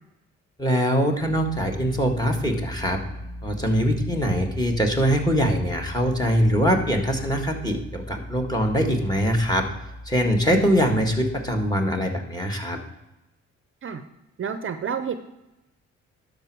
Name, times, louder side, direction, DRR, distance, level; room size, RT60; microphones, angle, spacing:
voice 1, 0.6-3.0 3.4-9.7 10.0-12.8, equal, 15° left, 3 dB, 1.7 m, -23 dB
sound 1, 1.2-11.7, equal, 65° left, 3.0 m, -38 dB
voice 2, 14.4-15.2, right 7 dB, 45° right, 9 dB, 0.6 m, -29 dB
12.0 x 5.3 x 4.7 m, 0.98 s
cardioid pair, 90°, 30 cm